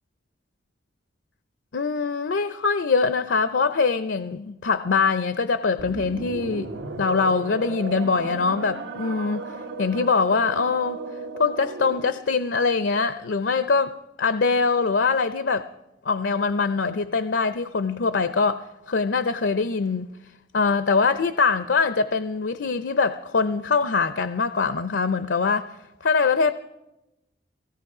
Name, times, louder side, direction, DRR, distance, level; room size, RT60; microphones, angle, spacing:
voice 1, 1.7-6.7 7.0-11.0 11.4-15.7 16.0-20.1 20.5-26.5, left 4 dB, 75° left, 0.5 m, -23 dB
sound 1, 5.8-12.3, right 3 dB, 80° right, 1.3 m, -35 dB
18.0 x 16.5 x 4.8 m
head